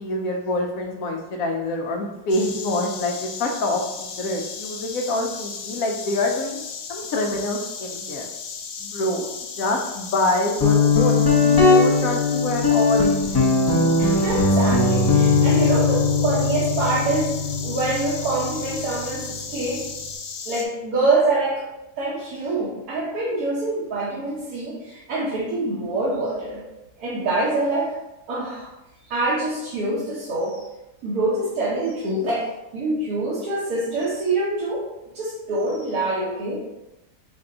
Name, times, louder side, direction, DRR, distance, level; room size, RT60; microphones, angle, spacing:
voice 1, 0.0-6.6 6.9-8.3 8.8-9.3 9.6-13.1, left 1 dB, 70° left, 2 dB, 0.9 m, -26 dB
Insect, 2.3-20.7, left 6 dB, 90° left, 1.2 m, -35 dB
Guitar, 10.6-20.1, left 3 dB, 25° left, 0.5 m, -20 dB
voice 2, 14.0-19.8 20.5-21.6 22.0-26.6 27.0-27.9 28.3-28.7 29.1-30.7 31.0-34.9 35.1-36.6, right 2 dB, 75° right, -6 dB, 1.4 m, -25 dB
4.8 x 2.3 x 3.7 m, 0.95 s
omnidirectional pair, 1.7 m